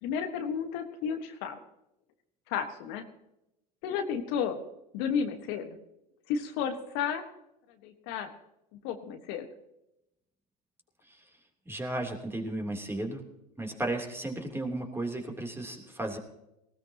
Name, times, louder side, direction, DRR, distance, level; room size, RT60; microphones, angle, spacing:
voice 1, 0.0-1.6 2.5-3.0 3.8-4.6 4.9-5.7 6.3-7.2 7.8-8.3 8.8-9.4, left 7 dB, 60° left, 7 dB, 1.5 m, -32 dB
voice 2, 11.7-13.2 13.6-16.2, right 1 dB, 10° right, 2 dB, 3.2 m, -34 dB
19.5 x 17.0 x 2.9 m, 0.85 s
hypercardioid pair, 80°, 21 cm